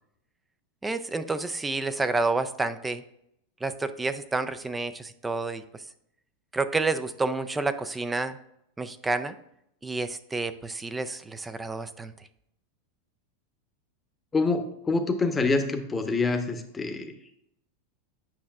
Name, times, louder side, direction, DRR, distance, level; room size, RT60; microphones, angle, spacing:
voice 1, 0.8-3.0 3.6-5.6 6.5-8.3 8.8-9.3 9.8-12.1, right 3 dB, 10° right, 12 dB, 0.4 m, -29 dB
voice 2, 14.3-17.1, left 3 dB, 15° left, 6 dB, 0.9 m, -26 dB
8.6 x 5.2 x 2.4 m, 0.76 s
hypercardioid pair, 115°, 0 cm